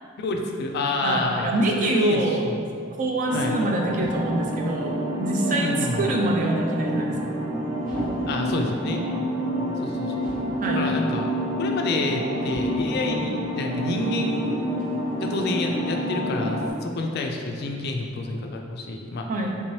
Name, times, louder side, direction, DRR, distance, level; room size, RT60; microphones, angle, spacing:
voice 1, 0.2-2.6 3.3-3.6 5.6-6.1 8.3-9.0 9.8-10.3 10.7-11.3 11.6-14.5 15.2-19.3, left 2 dB, 50° left, 2 dB, 0.3 m, -28 dB
voice 2, 1.0-2.4 3.0-7.2 10.6-10.9 19.3-19.6, right 1 dB, 40° right, 0 dB, 0.4 m, -25 dB
sound 1, 3.2-16.7, equal, ahead, 1.0 m, -28 dB
sound 2, 3.8-16.1, equal, 85° right, 1.2 m, -44 dB
3.3 x 2.8 x 3.1 m, 2.3 s
head